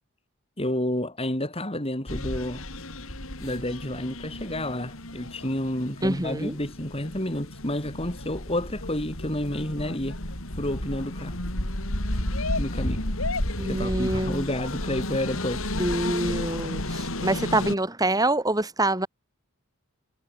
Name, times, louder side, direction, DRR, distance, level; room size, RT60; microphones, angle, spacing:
voice 1, 0.6-2.6 3.4-10.2 10.6-11.4 12.6-13.0 13.6-15.9, left 1 dB, 25° left, 5.5 m, -30 dB
sound 1, 2.1-17.7, left 1 dB, 65° left, 5.6 m, -32 dB
voice 2, 6.0-6.5 13.6-14.4 15.8-19.1, right 2 dB, 15° right, 4.0 m, -26 dB
head